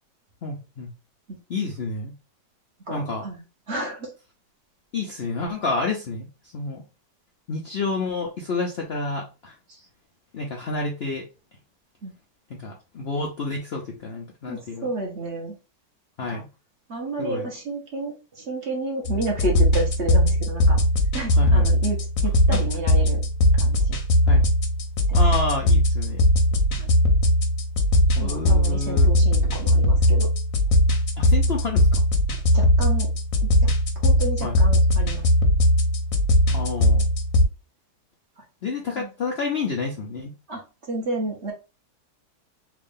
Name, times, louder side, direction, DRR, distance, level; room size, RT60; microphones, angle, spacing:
voice 1, 0.4-0.9 1.5-2.1 2.9-3.2 4.9-6.3 6.5-6.8 7.5-9.5 10.3-11.3 12.5-14.9 16.2-16.4 17.2-17.5 21.3-21.7 22.5-22.6 24.3-24.4 25.1-26.2 28.1-29.1 31.2-32.0 34.4-34.6 36.5-37.1 38.6-40.3, left 3 dB, 90° left, 0 dB, 0.5 m, -29 dB
voice 2, 2.9-4.1 9.7-9.8 12.0-12.1 14.5-15.5 16.2-16.4 16.9-20.8 21.1-22.0 22.2-23.2 23.5-24.0 25.1-25.2 26.8-26.9 28.2-30.3 32.5-33.1 33.4-33.7 34.0-35.2 36.5-36.7 38.9-39.1 40.5-41.5, right 2 dB, 45° right, 0 dB, 1.2 m, -31 dB
sound 1, 19.0-37.5, left 1 dB, 60° left, 1.0 m, -19 dB
3.5 x 2.4 x 3.5 m, 0.31 s
omnidirectional pair, 1.9 m